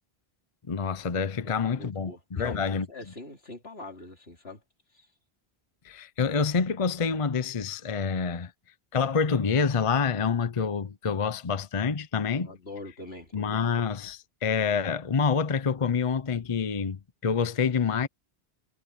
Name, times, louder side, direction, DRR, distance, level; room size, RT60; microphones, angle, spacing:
voice 1, 0.7-2.9 5.8-8.5 8.9-12.5 13.3-18.1, left 5 dB, 35° left, 0.7 m, -27 dB
voice 2, 1.4-4.6 4.9-5.1 12.3-13.7, left 2 dB, 80° left, 4.0 m, -43 dB
omnidirectional pair, 1.0 m